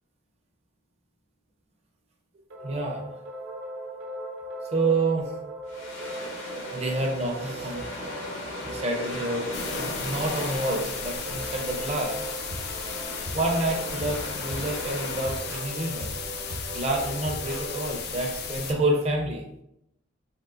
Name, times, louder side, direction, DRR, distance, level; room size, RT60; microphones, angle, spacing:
sound 1, 2.5-17.8, right 1 dB, 75° right, 0.8 m, -38 dB
voice 1, 2.6-3.0 4.7-5.3 6.7-7.9 8.6-9.5 9.8-12.2 13.3-16.1 16.7-19.4, right 2 dB, 30° right, 1 dB, 0.5 m, -28 dB
sound 2, 5.7-15.6, left 1 dB, 75° left, 0.8 m, -38 dB
sound 3, 9.5-18.7, left 6 dB, 50° left, 0.3 m, -36 dB
3.6 x 2.5 x 2.4 m, 0.82 s
head